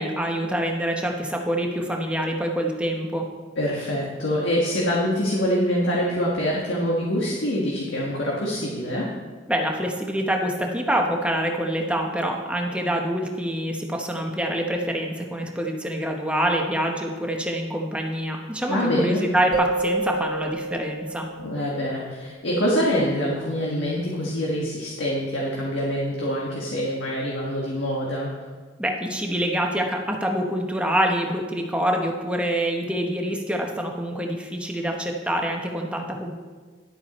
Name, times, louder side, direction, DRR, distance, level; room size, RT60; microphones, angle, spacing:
voice 1, 0.0-3.3 9.5-21.2 28.8-36.3, right 1 dB, 5° right, 1 dB, 1.0 m, -26 dB
voice 2, 3.6-9.1 18.7-19.2 21.4-28.3, equal, 70° left, -4 dB, 1.6 m, -25 dB
sound 1, 19.5-22.2, right 2 dB, 25° right, 0.6 m, -30 dB
11.5 x 8.1 x 4.3 m, 1.4 s
head